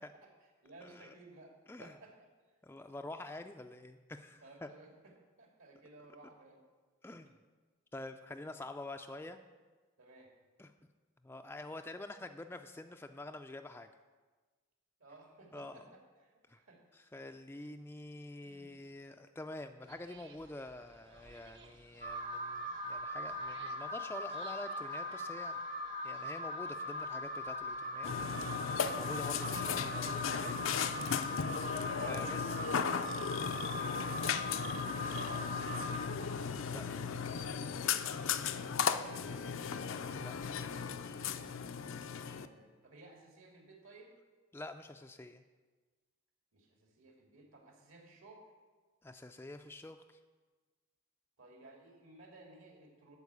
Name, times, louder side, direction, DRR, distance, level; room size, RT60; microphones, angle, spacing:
voice 1, 0.2-1.5 1.8-2.3 4.4-6.6 10.0-10.3 15.0-17.1 18.4-18.8 33.8-35.5 38.2-39.7 42.1-44.2 46.5-48.5 51.4-53.2, right 2 dB, 75° right, 0 dB, 2.6 m, -57 dB
voice 2, 0.8-1.1 1.7-1.9 2.6-4.7 7.0-7.3 7.9-9.4 10.6-10.7 11.2-13.9 15.5-15.8 16.5-16.6 16.9-25.6 26.0-28.1 28.5-30.5 32.0-32.6 36.5-36.9 40.1-40.4 44.5-45.4 49.0-50.0, left 2 dB, 10° left, 6 dB, 0.3 m, -47 dB
sound 1, 19.8-36.0, right 3 dB, 55° right, 1.2 m, -60 dB
Alarm, 22.0-36.1, left 1 dB, 40° right, 0.8 m, -40 dB
Burping eructation, 28.0-42.5, left 6 dB, 65° left, 0.5 m, -36 dB
12.0 x 4.6 x 8.2 m, 1.3 s
head